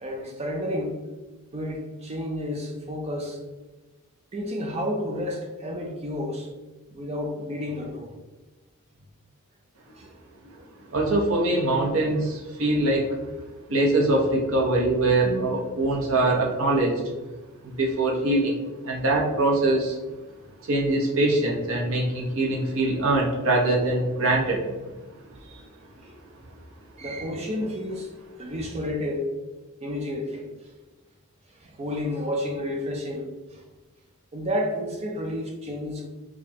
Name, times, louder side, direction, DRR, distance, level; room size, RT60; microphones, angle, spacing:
voice 1, 0.0-1.0 1.5-3.4 4.3-6.5 6.9-8.1 10.0-10.1 25.3-25.6 26.0-26.1 27.0-28.1 28.4-29.3 29.8-30.5 31.5-33.6 34.3-36.1, left 1 dB, 30° right, 1 dB, 0.4 m, -31 dB
voice 2, 10.9-13.0 13.7-17.0 17.6-18.6 18.8-20.0 20.6-24.6, right 2 dB, 70° right, -1 dB, 0.9 m, -23 dB
4.9 x 2.2 x 2.8 m, 1.2 s
head